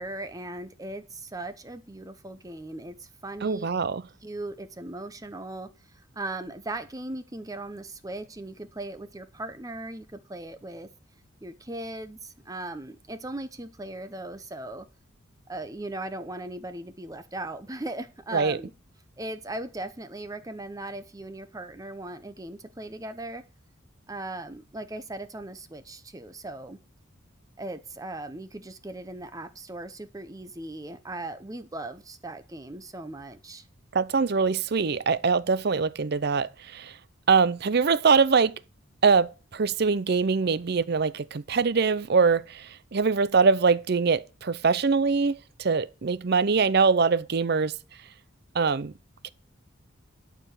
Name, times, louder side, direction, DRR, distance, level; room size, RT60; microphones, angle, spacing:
voice 1, 0.0-3.7 4.2-10.9 11.4-14.9 15.5-18.7 19.2-23.4 24.1-26.8 27.6-33.6, right 2 dB, 15° right, 0.7 m, -38 dB
voice 2, 3.4-4.0 18.3-18.6 33.9-36.9 37.3-38.5 39.0-47.8 48.5-48.9 49.2-49.3, right 5 dB, 55° right, 0.5 m, -23 dB
12.0 x 4.8 x 8.0 m
head